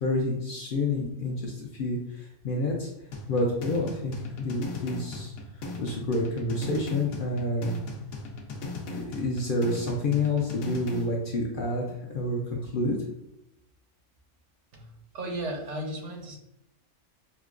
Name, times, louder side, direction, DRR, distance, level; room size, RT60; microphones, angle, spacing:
voice 1, 0.0-2.9 3.3-5.3 5.8-7.7 8.9-13.0, left 2 dB, 60° left, -1 dB, 0.6 m, -29 dB
sound 1, 3.1-11.1, left 3 dB, 75° left, 0.9 m, -38 dB
voice 2, 14.7-16.4, right 1 dB, 70° right, 1 dB, 1.1 m, -35 dB
5.2 x 2.1 x 2.4 m, 0.85 s
omnidirectional pair, 1.3 m